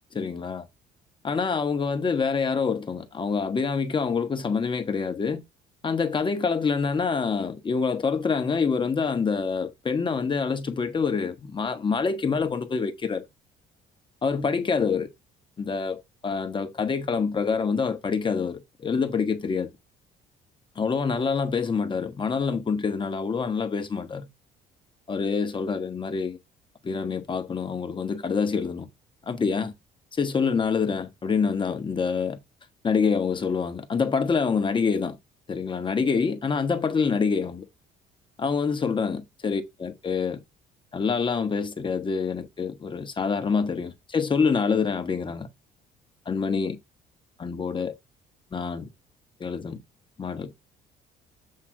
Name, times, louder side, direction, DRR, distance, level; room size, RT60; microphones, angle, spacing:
voice 1, 0.1-0.6 1.2-5.4 5.8-13.2 14.2-15.1 15.6-19.7 20.8-24.3 25.1-26.4 26.8-28.9 29.3-29.7 30.2-32.4 32.8-35.2 35.5-37.6 38.4-40.4 40.9-45.5 46.3-46.8 47.4-47.9 48.5-48.9 49.4-49.8 50.2-50.5, left 5 dB, 30° left, 1.1 m, -26 dB
7.6 x 3.3 x 6.1 m
cardioid pair, 110°, 17 cm